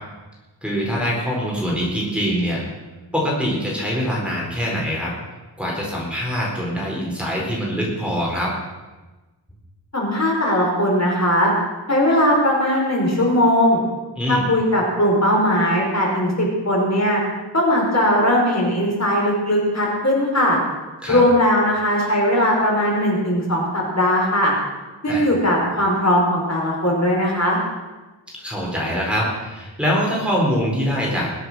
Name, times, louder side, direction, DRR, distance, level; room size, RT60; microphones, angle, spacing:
voice 1, 0.6-2.6 3.1-5.1 5.6-8.5 14.2-14.5 21.0-21.2 25.1-25.3 28.4-31.3, equal, ahead, -4 dB, 4.4 m, -23 dB
voice 2, 9.9-11.5 11.9-13.8 14.3-17.2 17.5-20.6 21.1-24.5 25.0-27.6, equal, 35° left, -3 dB, 5.1 m, -19 dB
22.0 x 7.9 x 6.3 m, 1.2 s
wide cardioid pair, 85°, 44 cm